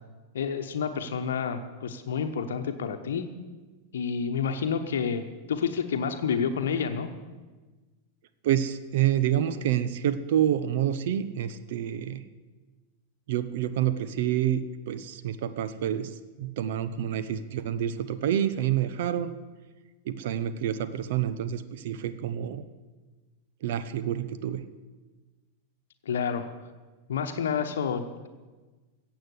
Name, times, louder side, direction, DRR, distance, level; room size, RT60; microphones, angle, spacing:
voice 1, 0.3-3.2 3.9-7.1 26.0-26.4 27.1-28.3, left 6 dB, 65° left, 6 dB, 1.0 m, -29 dB
voice 2, 8.4-12.2 13.3-19.3 20.0-22.6 23.6-24.6, right 10 dB, 55° right, 12 dB, 0.7 m, -28 dB
15.5 x 8.0 x 8.3 m, 1.3 s
figure-of-eight pair, 90°, 0 cm